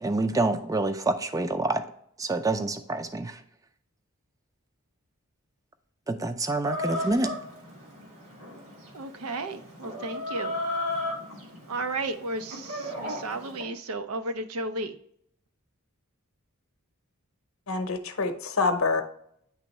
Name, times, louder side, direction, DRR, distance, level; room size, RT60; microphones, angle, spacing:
voice 1, 0.0-1.8 2.2-3.4 6.1-7.3, right 2 dB, 15° right, 9 dB, 0.4 m, -27 dB
Chicken rooster, 6.6-13.6, left 1 dB, 70° right, 1.9 m, -35 dB
voice 2, 8.9-10.5 11.7-15.0, right 2 dB, 85° right, 9 dB, 0.6 m, -33 dB
voice 3, 17.7-19.0, left 3 dB, 65° left, 7 dB, 0.7 m, -26 dB
9.0 x 3.5 x 3.1 m, 0.68 s
head